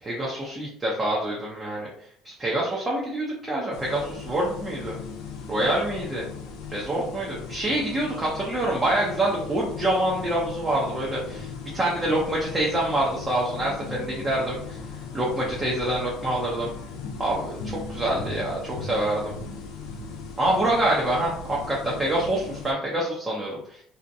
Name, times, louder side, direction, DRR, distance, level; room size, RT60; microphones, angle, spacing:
voice 1, 0.0-1.9 2.2-5.0 5.5-6.3 6.7-14.8 15.1-16.7 17.2-19.3 20.4-23.8, right 1 dB, 20° right, -4 dB, 0.6 m, -26 dB
sound 1, 3.7-22.7, left 4 dB, 80° left, 0.5 m, -38 dB
2.6 x 2.1 x 2.5 m, 0.65 s
cardioid pair, 115°, 0 cm